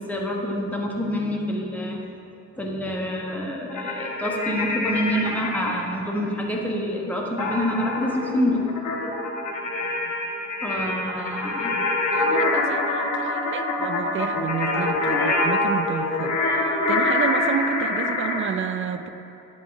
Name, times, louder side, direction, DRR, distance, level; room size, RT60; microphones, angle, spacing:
voice 1, 0.0-2.0 2.6-8.6 10.6-11.8, equal, 5° left, -2 dB, 1.2 m, -27 dB
sound 1, 3.7-5.8 7.4-18.5, left 2 dB, 65° left, 1.3 m, -25 dB
voice 2, 11.2-11.7 12.1-19.1, right 7 dB, 40° right, 10 dB, 0.5 m, -30 dB
10.5 x 4.0 x 4.8 m, 2.9 s
cardioid pair, 90°, 30 cm